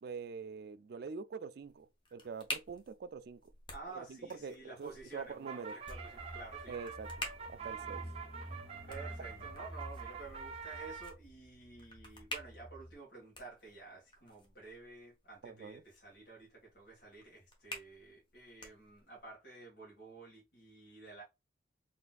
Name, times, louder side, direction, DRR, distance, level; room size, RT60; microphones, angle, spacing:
voice 1, 0.0-3.5 3.9-5.8 6.7-8.0 15.4-15.8, right 5 dB, 55° right, 0.4 m, -45 dB
sound 1, 1.6-19.3, left 1 dB, 25° left, 1.1 m, -50 dB
voice 2, 3.7-6.8 8.9-21.2, right 3 dB, 60° left, 1.8 m, -51 dB
sound 2, 5.0-11.1, right 6 dB, 35° right, 0.7 m, -46 dB
Car / Engine, 5.9-12.9, equal, ahead, 1.0 m, -50 dB
4.3 x 3.3 x 2.3 m
head